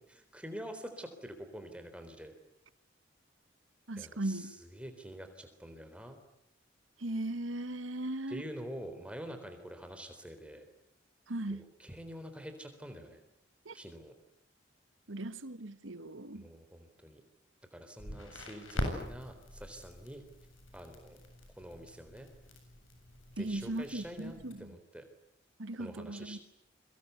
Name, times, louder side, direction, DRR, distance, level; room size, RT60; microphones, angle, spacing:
voice 1, 0.1-2.3 4.0-6.2 8.3-10.7 11.5-13.2 13.7-14.1 16.3-17.2 17.7-20.2 20.7-21.2 21.6-22.3 23.4-25.0 25.8-26.4, equal, 5° right, 3.8 m, -46 dB
voice 2, 3.9-4.5 7.0-8.4 11.3-11.6 13.7-13.8 15.1-16.4 23.4-24.6 25.6-26.4, right 1 dB, 75° right, 1.4 m, -38 dB
Crackle, 18.0-24.5, equal, 85° left, 7.8 m, -43 dB
29.5 x 24.0 x 8.2 m
head